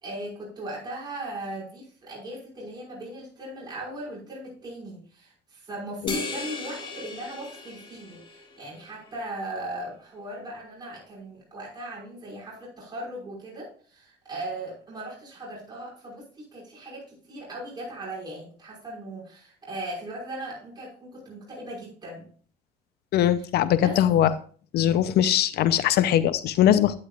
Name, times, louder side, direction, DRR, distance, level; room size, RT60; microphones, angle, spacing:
voice 1, 0.0-22.3 23.8-24.0, right 1 dB, 25° right, -5 dB, 5.4 m, -38 dB
sound 1, 6.1-8.8, left 3 dB, 30° left, 2.8 m, -36 dB
voice 2, 23.1-24.3 24.7-27.0, left 11 dB, 70° left, 14 dB, 0.7 m, -21 dB
11.5 x 9.5 x 2.4 m, 0.44 s
cardioid pair, 110°, 17 cm